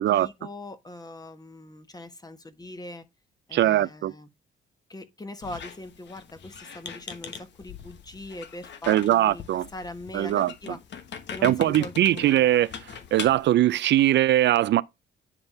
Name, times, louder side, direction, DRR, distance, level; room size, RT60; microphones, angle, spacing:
voice 1, 0.0-3.0 3.5-4.3 4.9-9.4 9.7-10.8 11.3-12.5, left 1 dB, 20° left, 1.3 m, -41 dB
voice 2, 3.5-4.1 8.9-9.7 10.1-10.5 11.4-12.7 13.1-14.8, right 13 dB, 65° right, 0.4 m, -21 dB
Squeak, 5.4-13.5, left 7 dB, 65° left, 1.2 m, -41 dB
9.7 x 3.7 x 4.2 m
cardioid pair, 90°, 20 cm